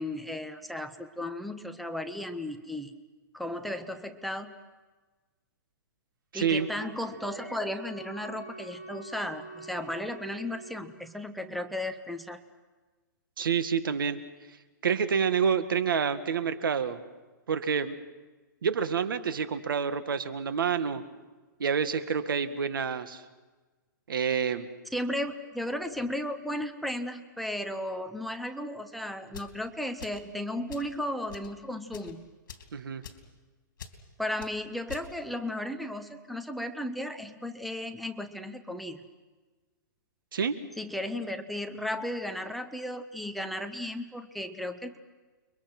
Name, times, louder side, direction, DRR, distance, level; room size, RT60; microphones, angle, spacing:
voice 1, 0.0-3.0 3.3-4.5 6.3-12.4 24.9-32.3 34.2-39.0 40.8-45.0, left 1 dB, ahead, 8 dB, 0.7 m, -35 dB
voice 2, 6.3-6.7 13.4-14.2 14.8-17.0 17.5-18.0 18.6-21.0 21.6-23.2 24.1-24.7 32.7-33.0 40.3-40.5, right 6 dB, 90° right, 10 dB, 1.8 m, -28 dB
Wind instrument woodwind instrument, 6.5-10.9, right 2 dB, 65° right, 7.7 m, -46 dB
sound 1, 29.3-29.6 30.0-30.3 30.7-30.9 31.3-31.5 31.9-32.1 32.5-32.7 33.0-33.3 33.8-34.0 34.4-34.5 34.9-35.1, left 7 dB, 70° left, 3.4 m, -45 dB
29.5 x 23.0 x 6.1 m, 1.3 s
hypercardioid pair, 170°, 11 cm